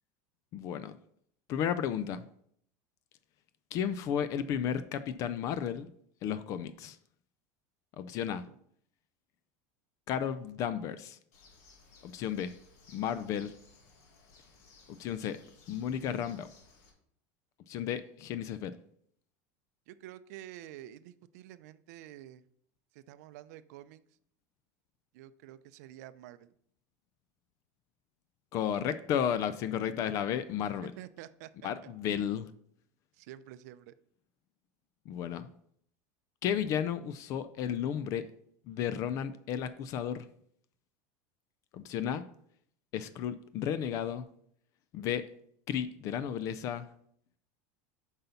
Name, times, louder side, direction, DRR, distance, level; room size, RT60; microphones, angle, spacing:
voice 1, 0.5-1.0 1.5-2.2 3.7-5.9 6.2-7.0 8.0-8.4 10.1-11.2 12.0-12.5 12.9-13.5 14.9-15.4 15.7-16.5 17.7-18.7 28.5-30.9 31.6-32.5 35.1-35.5 36.4-38.2 38.7-40.3 41.7-42.2 42.9-44.3 44.9-45.3 45.7-46.8, left 9 dB, 40° left, 13 dB, 0.4 m, -33 dB
Bird, 11.3-16.9, left 4 dB, 75° left, 2.0 m, -60 dB
voice 2, 19.9-22.4 22.9-24.0 25.1-26.5 31.0-31.5 33.1-33.9, right 13 dB, 75° right, 14 dB, 0.5 m, -49 dB
7.9 x 5.6 x 4.0 m, 0.67 s
supercardioid pair, 165°, 9 cm